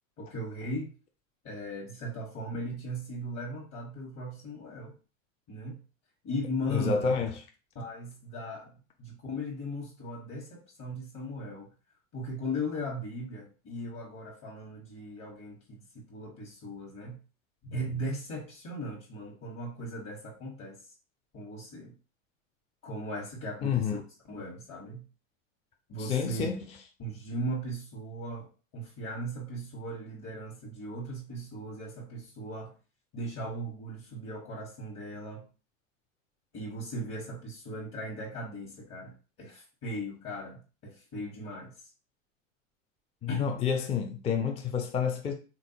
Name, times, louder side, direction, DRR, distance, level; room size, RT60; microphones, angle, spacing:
voice 1, 0.2-0.9 1.4-4.9 5.5-5.8 6.2-7.1 7.7-11.7 12.1-17.2 17.6-20.8 21.3-21.9 22.8-24.0 24.3-25.0 25.9-26.5 27.0-32.7 33.1-35.4 36.5-41.7 43.3-43.6, equal, 40° left, 1.3 m, -38 dB
voice 2, 6.7-7.3 23.6-24.0 26.0-26.6 43.2-45.3, left 6 dB, 15° left, 0.4 m, -29 dB
3.4 x 2.5 x 2.8 m
hypercardioid pair, 100°, 40 cm